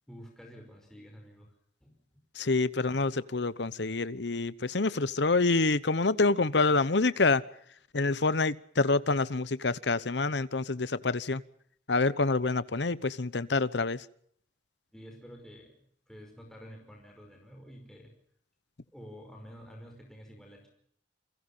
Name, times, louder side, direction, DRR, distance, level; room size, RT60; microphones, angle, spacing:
voice 1, 0.1-1.5 1.8-2.2 14.9-15.7 16.1-18.1 18.9-20.7, equal, 5° left, 5.2 m, -49 dB
voice 2, 2.3-7.4 7.9-11.4 11.9-14.0, left 3 dB, 75° left, 1.0 m, -27 dB
29.0 x 22.5 x 5.7 m
head